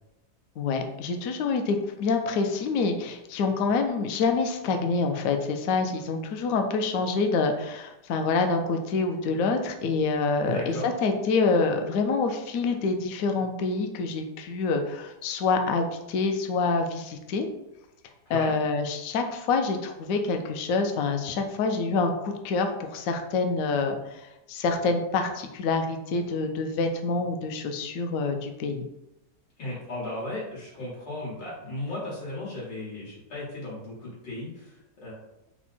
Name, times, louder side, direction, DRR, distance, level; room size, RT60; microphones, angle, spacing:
voice 1, 0.6-17.5 18.3-28.8, left 4 dB, 70° left, 5 dB, 0.9 m, -26 dB
voice 2, 10.5-10.9 18.3-18.5 29.6-35.1, left 1 dB, 90° left, -6 dB, 2.3 m, -36 dB
4.4 x 2.2 x 4.1 m, 0.91 s
omnidirectional pair, 1.9 m